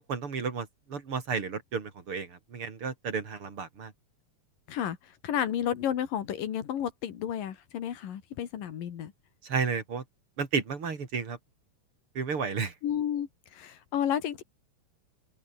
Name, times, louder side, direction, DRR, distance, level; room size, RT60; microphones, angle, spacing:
voice 1, 0.1-3.9 9.4-10.0 10.4-11.4 12.2-12.7, right 5 dB, 40° right, 3.8 m, -32 dB
voice 2, 5.2-9.1 12.8-14.4, left 9 dB, 90° left, 3.8 m, -31 dB
omnidirectional pair, 3.8 m